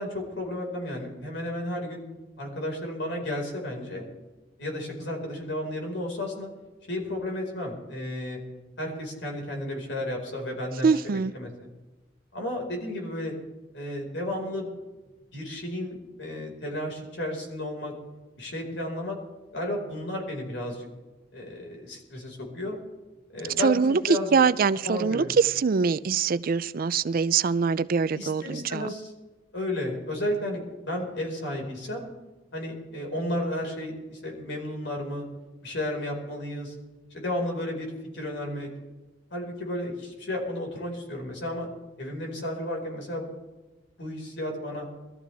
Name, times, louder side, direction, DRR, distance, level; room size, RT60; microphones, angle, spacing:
voice 1, 0.0-2.0 2.4-4.1 4.6-6.5 6.9-8.4 8.8-10.9 11.3-11.5 12.3-13.3 13.7-14.7 15.3-17.9 18.4-19.2 19.5-20.9 21.3-22.8 23.3-24.4 24.8-25.3 28.1-29.1 29.5-32.1 32.5-35.3 35.6-36.7 37.1-38.7 39.3-41.7 42.0-43.3 44.0-44.9, left 1 dB, 75° left, 0 dB, 4.9 m, -33 dB
voice 2, 10.8-11.4 23.6-28.9, right 5 dB, 50° right, 17 dB, 0.4 m, -23 dB
22.5 x 14.0 x 3.4 m, 1.2 s
head